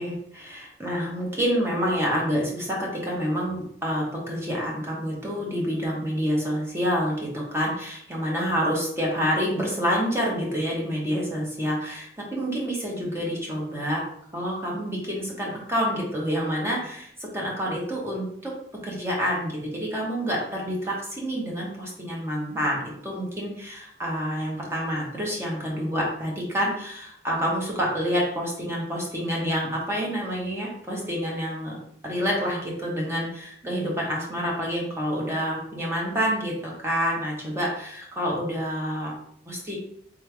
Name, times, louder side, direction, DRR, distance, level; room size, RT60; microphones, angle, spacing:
voice 1, 0.0-14.0 14.3-18.5 18.8-31.8 32.0-39.1 39.5-39.8, equal, 15° right, -3 dB, 1.0 m, -28 dB
3.5 x 3.3 x 3.2 m, 0.67 s
head